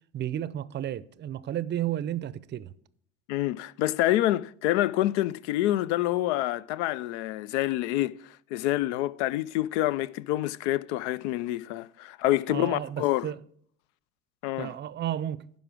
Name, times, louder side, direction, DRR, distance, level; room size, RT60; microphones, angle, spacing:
voice 1, 0.1-2.7 12.5-13.4 14.6-15.4, right 11 dB, 30° right, 0.6 m, -32 dB
voice 2, 3.3-8.2 8.5-13.3 14.4-14.7, left 15 dB, 70° left, 0.5 m, -27 dB
11.5 x 5.1 x 6.1 m
hypercardioid pair, 75°, 36 cm